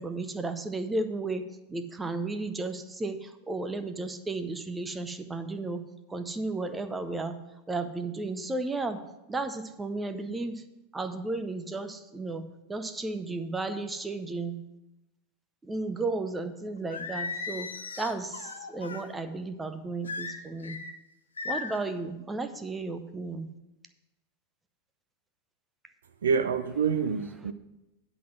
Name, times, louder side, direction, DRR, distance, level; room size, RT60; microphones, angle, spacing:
voice 1, 0.0-5.8 6.1-7.4 7.7-9.0 9.3-10.6 10.9-14.6 15.6-17.7 18.0-20.8 21.4-23.5, right 3 dB, 10° right, 9 dB, 0.7 m, -34 dB
Singing, 16.9-19.1 20.1-20.9 21.4-21.9, left 4 dB, 70° left, 0.8 m, -36 dB
voice 2, 26.2-27.5, right 6 dB, 65° right, 8 dB, 0.4 m, -27 dB
10.0 x 4.0 x 7.5 m, 0.97 s
figure-of-eight pair, 90°, 0 cm